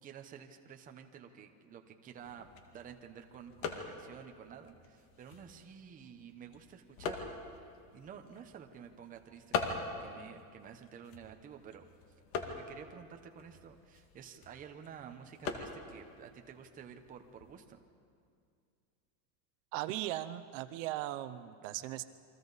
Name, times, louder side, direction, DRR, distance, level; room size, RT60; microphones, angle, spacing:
voice 1, 0.0-2.5 2.7-7.4 7.9-11.9 12.4-17.8, right 8 dB, 20° right, 5 dB, 0.8 m, -51 dB
sound 1, 2.1-17.6, left 5 dB, 65° left, 2.2 m, -44 dB
voice 2, 19.7-22.0, right 14 dB, 60° right, 12 dB, 0.8 m, -38 dB
28.5 x 23.5 x 4.1 m, 2.3 s
cardioid pair, 170°, 42 cm